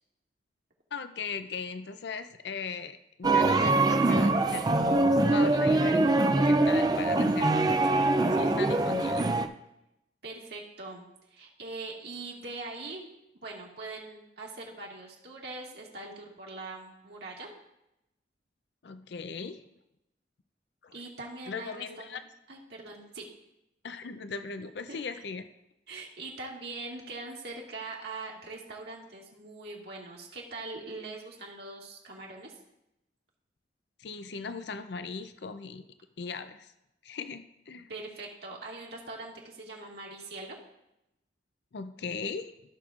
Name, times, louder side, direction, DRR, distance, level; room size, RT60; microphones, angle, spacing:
voice 1, 0.9-6.0 6.4-7.7 8.3-9.3 18.8-19.6 20.8-20.9 21.5-22.2 23.8-25.4 34.0-35.8 36.2-36.7 37.0-37.9 41.7-42.6, left 5 dB, 70° left, 10 dB, 0.5 m, -38 dB
sound 1, 3.2-9.5, right 2 dB, 20° right, 0.4 m, -23 dB
voice 2, 10.2-11.0 11.3-13.1 13.3-17.5 20.9-23.3 24.9-25.0 25.9-32.5 37.9-40.6, right 3 dB, 65° right, -2 dB, 1.8 m, -42 dB
15.0 x 6.1 x 2.4 m, 0.87 s
head